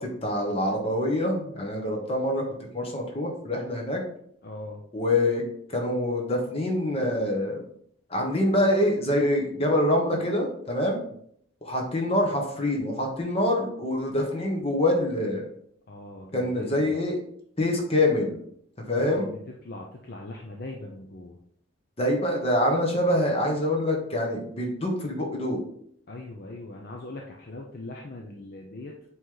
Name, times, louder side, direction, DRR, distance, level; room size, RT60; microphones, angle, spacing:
voice 1, 0.0-2.4 2.7-4.0 4.9-5.4 5.7-7.6 8.1-11.0 11.6-15.5 16.3-17.2 17.6-18.4 18.9-19.3 22.0-25.6, left 1 dB, 30° left, 0 dB, 1.2 m, -25 dB
voice 2, 4.4-4.8 15.9-17.0 18.9-21.4 26.1-29.0, left 2 dB, 50° left, 0 dB, 0.6 m, -40 dB
7.9 x 3.1 x 3.8 m, 0.68 s
head